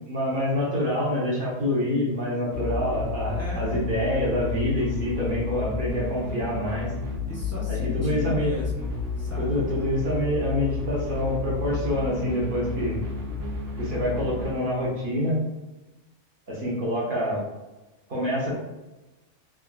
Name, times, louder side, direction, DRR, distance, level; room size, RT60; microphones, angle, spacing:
voice 1, 0.1-6.9 7.7-8.5 9.4-13.0 13.8-15.4 16.5-17.4 18.1-18.6, left 1 dB, 50° right, -5 dB, 0.9 m, -26 dB
sound 1, 2.5-14.5, left 4 dB, 85° right, 1.1 m, -31 dB
voice 2, 3.3-3.9 7.3-9.6, equal, 25° left, -5 dB, 0.3 m, -37 dB
3.4 x 2.3 x 2.2 m, 1.1 s
omnidirectional pair, 1.2 m